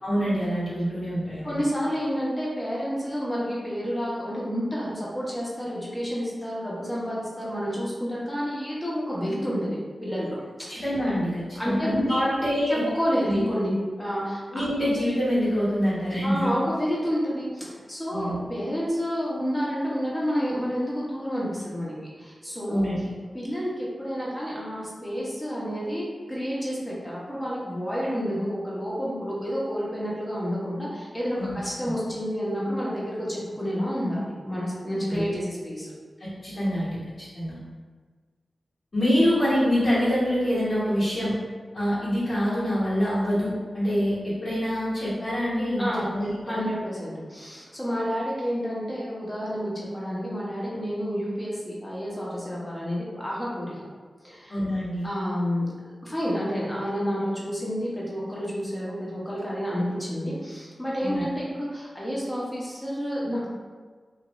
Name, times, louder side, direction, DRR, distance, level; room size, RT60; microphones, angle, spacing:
voice 1, 0.0-1.6 10.7-12.8 13.2-13.4 14.5-16.5 18.1-18.4 22.7-22.9 31.4-31.6 31.8-31.9 35.1-35.2 36.2-37.0 37.3-37.6 38.9-41.3 41.7-46.6 54.5-55.1 61.0-61.2, equal, 65° left, -12 dB, 1.4 m, -25 dB
voice 2, 1.4-10.8 11.6-12.4 12.7-14.4 16.2-22.8 23.3-35.9 45.8-46.1 46.4-53.7 54.2-54.6 55.0-55.7 56.0-63.5, equal, 20° left, -6 dB, 1.0 m, -29 dB
2.6 x 2.5 x 3.0 m, 1.5 s
cardioid pair, 40°, 0 cm